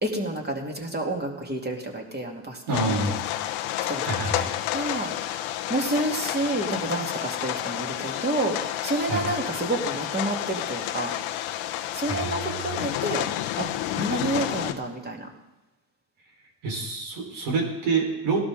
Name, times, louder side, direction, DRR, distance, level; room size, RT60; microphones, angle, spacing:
voice 1, 0.0-3.2 3.9-4.3 4.7-5.3 5.7-11.2 11.9-13.3 13.6-15.3, right 2 dB, 20° right, 0 dB, 3.4 m, -29 dB
sound 1, 2.7-14.7, left 13 dB, 75° left, 1.1 m, -30 dB
voice 2, 2.7-3.2 4.0-4.5 9.0-9.2 12.1-12.8 16.6-18.4, right 4 dB, 70° right, 0 dB, 4.8 m, -27 dB
18.0 x 12.0 x 3.9 m, 0.99 s
supercardioid pair, 75°, 50 cm